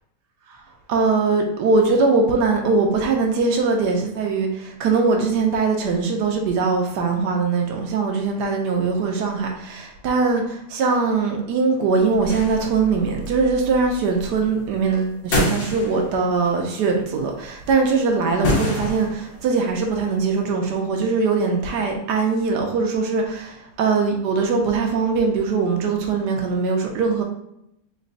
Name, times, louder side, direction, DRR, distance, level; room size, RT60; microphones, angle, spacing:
voice 1, 0.9-27.2, right 4 dB, 75° right, 2 dB, 1.2 m, -21 dB
sound 1, 12.3-16.4 16.8-17.5 17.9-18.0 18.3-20.2, left 1 dB, 85° left, 1.7 m, -28 dB
4.0 x 2.2 x 3.8 m, 0.79 s
omnidirectional pair, 1.9 m